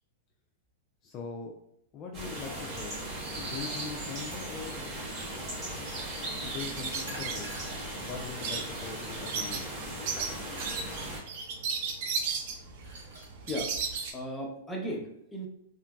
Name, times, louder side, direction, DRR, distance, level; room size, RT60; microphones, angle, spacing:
voice 1, 1.0-1.6 1.9-3.0 3.3-5.0 6.4-7.5 8.0-9.7, left 5 dB, 35° left, 1 dB, 0.3 m, -41 dB
sound 1, 2.1-11.2, right 1 dB, 35° right, 1.3 m, -38 dB
sound 2, 3.1-3.9 7.1-7.9 8.7-8.8 10.6-10.9 12.6-13.3, right 1 dB, 70° right, 1.2 m, -47 dB
sound 3, 6.6-14.1, right 5 dB, 55° right, 0.5 m, -35 dB
voice 2, 14.1-15.5, equal, 5° left, -1 dB, 0.7 m, -36 dB
2.9 x 2.5 x 2.3 m, 0.77 s
hypercardioid pair, 120°, 0 cm